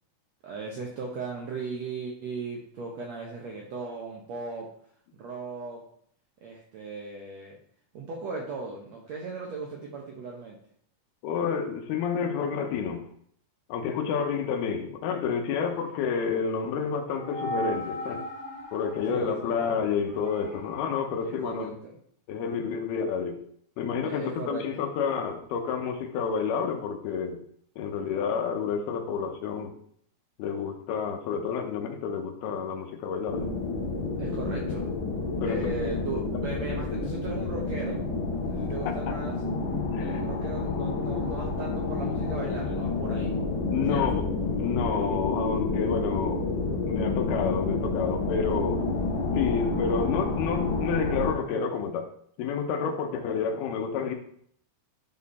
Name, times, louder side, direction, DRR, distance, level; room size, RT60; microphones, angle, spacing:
voice 1, 0.4-4.7 5.1-5.8 6.4-7.6 7.9-10.6 19.1-19.6 21.4-21.9 24.0-24.9 34.2-34.9 35.4-38.0 38.5-39.4 40.0-43.3 43.9-44.2, right 4 dB, 75° right, -1 dB, 1.6 m, -37 dB
voice 2, 11.2-13.1 13.7-18.2 18.7-21.7 22.3-23.4 23.8-27.4 27.8-29.7 30.4-33.5 35.4-36.0 39.9-40.2 43.7-44.3 44.6-46.5 46.9-48.9 49.3-52.1 52.4-54.2, left 6 dB, 85° left, 4 dB, 2.9 m, -29 dB
sound 1, 16.2-21.0, right 1 dB, 5° left, 1.9 m, -38 dB
sound 2, 33.3-51.3, left 3 dB, 65° left, 2.2 m, -29 dB
10.5 x 4.3 x 4.2 m, 0.64 s
omnidirectional pair, 4.4 m